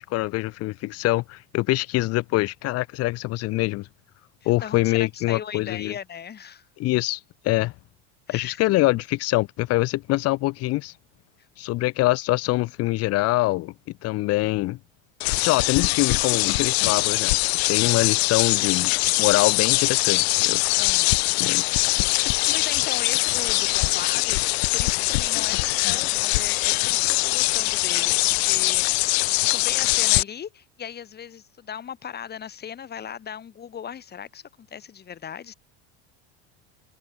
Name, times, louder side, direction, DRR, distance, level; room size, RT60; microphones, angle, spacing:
voice 1, 0.0-3.9 4.5-5.9 6.8-7.2 7.4-7.7 8.3-10.9 11.6-13.7 14.0-14.8 15.4-17.4 17.7-20.6 21.4-21.6, left 19 dB, 50° left, 1.1 m, -24 dB
voice 2, 4.4-6.7 8.3-8.6 20.8-21.3 22.2-24.4 24.7-28.8 29.5-35.5, left 8 dB, 30° left, 5.4 m, -38 dB
sound 1, 15.2-30.2, left 25 dB, 75° left, 1.2 m, -22 dB
supercardioid pair, 115°, 32 cm